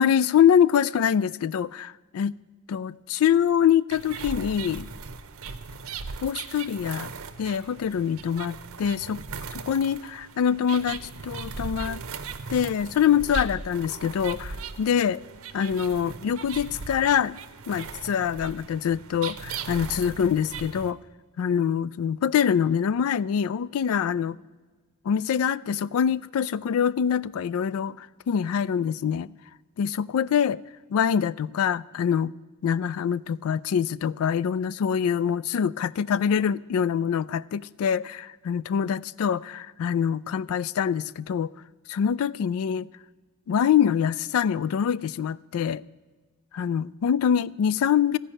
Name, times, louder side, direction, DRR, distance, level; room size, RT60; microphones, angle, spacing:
voice 1, 0.0-2.4 2.7-4.9 6.2-7.1 7.4-12.0 12.5-15.2 15.5-17.4 17.7-21.0 21.4-24.4 25.1-29.3 29.8-30.6 30.9-32.3 32.6-41.5 41.9-42.9 43.5-45.8 46.5-48.2, left 8 dB, 80° left, 0.3 m, -24 dB
sound 1, 3.9-20.9, right 5 dB, 75° right, 0.7 m, -38 dB
14.5 x 5.3 x 8.9 m
head